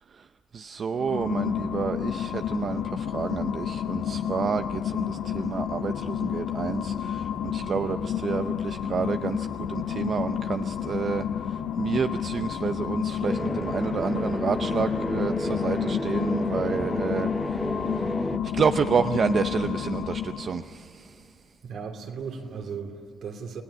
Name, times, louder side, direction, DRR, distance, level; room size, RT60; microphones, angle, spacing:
voice 1, 0.5-21.3, right 6 dB, 50° right, 9 dB, 0.7 m, -30 dB
sound 1, 0.9-20.7, left 9 dB, 85° left, 1.1 m, -30 dB
sound 2, 13.2-18.4, equal, ahead, 0.8 m, -31 dB
voice 2, 21.6-23.6, right 5 dB, 70° right, 3 dB, 3.0 m, -36 dB
28.5 x 18.0 x 9.9 m, 2.4 s
cardioid pair, 90°, 0 cm